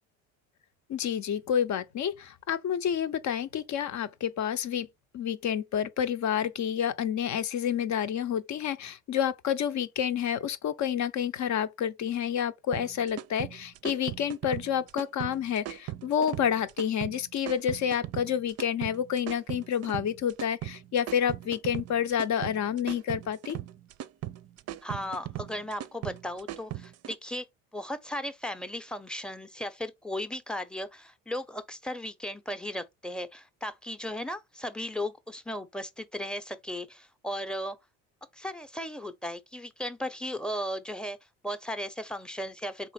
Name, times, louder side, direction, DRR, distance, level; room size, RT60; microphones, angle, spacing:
voice 1, 0.9-4.9 5.1-23.6, left 9 dB, 50° left, 0.7 m, -29 dB
sound 1, 12.7-27.2, right 13 dB, 45° right, 0.5 m, -38 dB
voice 2, 24.8-27.4 27.7-37.8 38.3-41.2 41.4-42.9, left 1 dB, ahead, 0.7 m, -36 dB
3.8 x 3.1 x 4.2 m
supercardioid pair, 75°, 37 cm